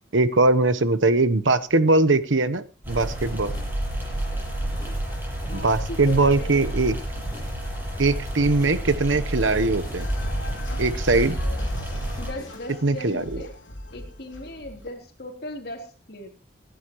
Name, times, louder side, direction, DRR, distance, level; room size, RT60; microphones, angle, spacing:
voice 1, 0.1-3.5 5.5-6.9 8.0-10.1 10.8-11.4 12.8-13.2, right 2 dB, 85° right, 11 dB, 1.1 m, -21 dB
sound 1, 2.8-12.3, right 1 dB, 10° right, 7.8 m, -30 dB
sound 2, 2.9-12.8, equal, 20° left, 5.7 m, -46 dB
voice 2, 5.5-6.6 12.2-13.5 13.9-16.3, left 1 dB, 55° left, 3 dB, 3.6 m, -38 dB
sound 3, 10.0-14.8, equal, 80° left, 3.6 m, -35 dB
25.5 x 11.5 x 3.1 m, 0.35 s
head